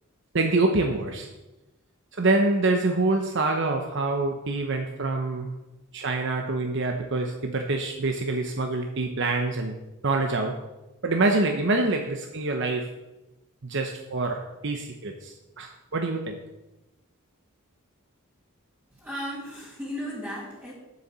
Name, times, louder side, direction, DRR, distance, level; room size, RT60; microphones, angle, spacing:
voice 1, 0.3-1.3 2.1-5.6 5.9-9.8 10.0-10.6 11.0-12.9 13.6-16.4, right 2 dB, 60° right, 4 dB, 0.9 m, -26 dB
voice 2, 19.0-20.7, equal, 10° right, -6 dB, 2.3 m, -35 dB
8.3 x 6.9 x 7.5 m, 1.0 s
head